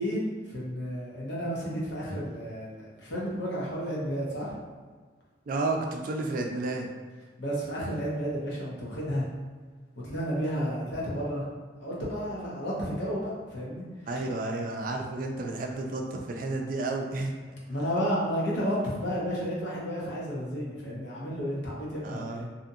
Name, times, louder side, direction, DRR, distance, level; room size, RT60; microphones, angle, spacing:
voice 1, 0.0-4.5 7.4-9.3 10.0-11.4 11.8-13.8 17.7-22.5, equal, 80° left, -6 dB, 0.9 m, -32 dB
voice 2, 5.5-6.9 14.1-17.3 22.0-22.5, right 2 dB, 50° right, 2 dB, 0.3 m, -31 dB
2.7 x 2.4 x 2.7 m, 1.5 s
head